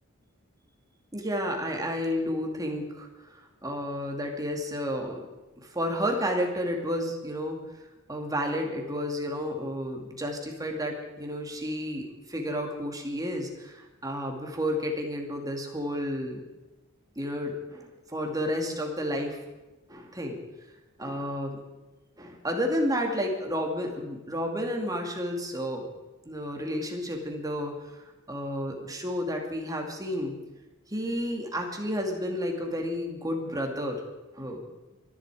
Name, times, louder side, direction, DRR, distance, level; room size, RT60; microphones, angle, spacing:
voice 1, 1.1-3.3 3.6-5.3 5.6-7.6 8.1-16.5 17.2-19.4 19.9-20.4 21.0-21.6 22.2-25.9 26.3-28.0 28.3-30.4 30.9-34.0 34.3-34.7, equal, 15° right, 1 dB, 2.4 m, -31 dB
24.0 x 11.0 x 4.9 m, 1.1 s
head